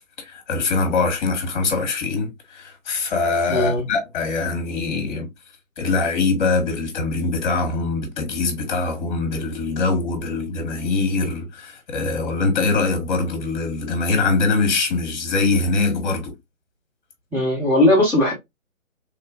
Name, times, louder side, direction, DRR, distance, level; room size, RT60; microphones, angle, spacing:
voice 1, 0.2-5.3 5.8-16.3, left 3 dB, 35° left, 1.5 m, -23 dB
voice 2, 3.5-3.8 17.3-18.3, left 1 dB, 5° right, 1.4 m, -18 dB
3.5 x 2.9 x 2.4 m
figure-of-eight pair, 140°, 41 cm